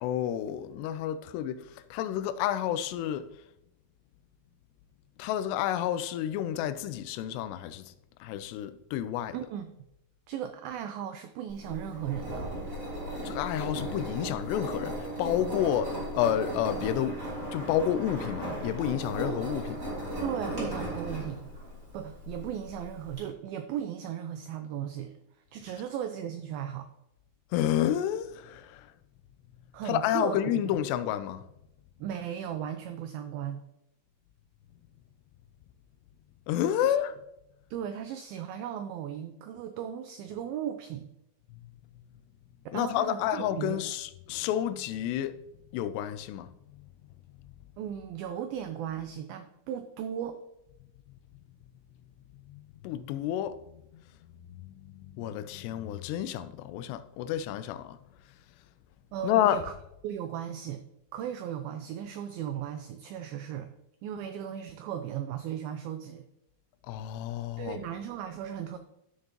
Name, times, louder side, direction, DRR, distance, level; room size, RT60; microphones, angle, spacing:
voice 1, 0.0-1.7 1.9-3.3 5.2-7.9 8.2-9.4 13.3-17.2 17.5-19.9 27.5-28.9 29.9-31.4 36.5-37.2 42.7-45.4 45.7-46.5 52.5-53.6 53.9-54.0 54.6-58.0 59.2-59.6 66.9-67.8, left 11 dB, 85° left, 2.7 m, -30 dB
voice 2, 9.3-9.7 10.3-12.5 20.2-21.5 21.9-25.1 25.5-26.9 29.7-30.8 32.0-33.7 36.8-36.9 37.7-41.1 42.7-43.9 47.8-50.4 59.1-59.7 60.0-60.8 61.1-63.7 64.0-66.3 67.6-68.8, right 9 dB, 85° right, 2.1 m, -36 dB
Engine, 11.5-23.2, right 1 dB, 20° right, 3.0 m, -36 dB
13.0 x 6.5 x 2.9 m
omnidirectional pair, 4.8 m